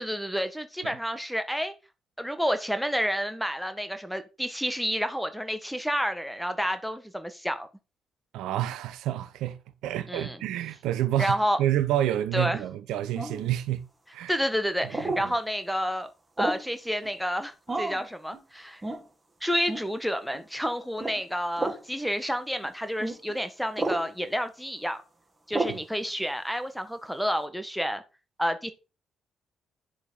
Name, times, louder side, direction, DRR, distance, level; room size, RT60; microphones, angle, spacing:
voice 1, 0.0-1.7 2.2-7.7 10.1-10.4 11.2-11.6 12.3-12.6 14.3-16.1 16.4-18.8 19.4-25.0 25.5-28.0 28.4-28.7, equal, ahead, 1.6 m, -29 dB
voice 2, 8.3-9.6 9.8-13.8 14.1-14.4 14.8-15.3 25.7-25.8, right 12 dB, 65° right, 0.8 m, -29 dB
sound 1, 13.1-13.5 14.9-15.3 16.4-16.7 17.7-18.0 18.8-19.0 19.7-19.9 21.0-21.2 21.6-21.8 23.0-23.2 23.8-24.1 25.5-25.8, right 2 dB, 20° right, 2.2 m, -30 dB
sound 2, 17.0-17.2 17.7-17.8 18.3-18.5 18.9-19.1 19.5-19.7 20.3-20.5 21.1-21.3 21.9-22.1 22.6-22.7 23.3-23.4, right 3 dB, 80° left, 5.2 m, -52 dB
10.5 x 6.8 x 4.3 m
figure-of-eight pair, 40°, 0 cm